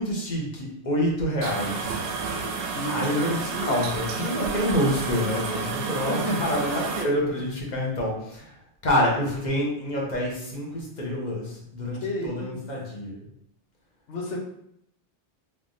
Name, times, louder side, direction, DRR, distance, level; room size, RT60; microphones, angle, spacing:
voice 1, 0.0-2.4 2.8-8.6 8.8-13.2, left 1 dB, 45° left, -2 dB, 0.9 m, -27 dB
sound 1, 1.4-7.0, right 5 dB, 65° right, 0.7 m, -30 dB
voice 2, 2.2-3.1 6.1-6.6 12.0-12.6 14.1-14.4, left 1 dB, 90° left, 0 dB, 1.0 m, -32 dB
3.4 x 3.1 x 2.6 m, 0.75 s
omnidirectional pair, 1.2 m